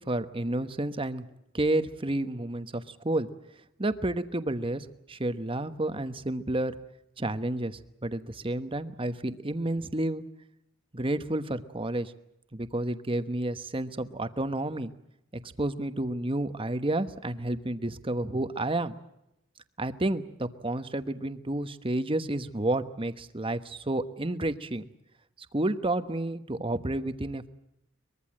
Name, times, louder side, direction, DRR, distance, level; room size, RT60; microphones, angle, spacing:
voice 1, 0.1-1.2 1.5-3.3 3.8-6.8 7.2-10.2 10.9-12.1 12.5-14.9 15.4-18.9 19.8-24.9 25.5-27.5, right 1 dB, 25° right, 10 dB, 1.2 m, -30 dB
23.5 x 22.0 x 7.6 m, 0.81 s
head